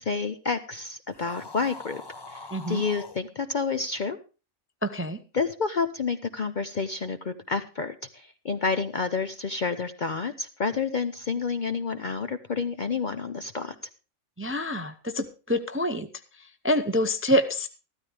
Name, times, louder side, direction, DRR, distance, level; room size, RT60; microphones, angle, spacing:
voice 1, 0.0-2.0 2.3-4.2 5.3-13.7, left 4 dB, 45° left, 10 dB, 0.6 m, -29 dB
sound 1, 1.1-3.2, left 3 dB, 20° left, 1.0 m, -43 dB
voice 2, 2.5-2.8 4.8-5.2 14.4-16.1 16.4-17.7, equal, 15° right, 9 dB, 0.5 m, -26 dB
14.0 x 13.0 x 3.4 m, 0.33 s
omnidirectional pair, 1.4 m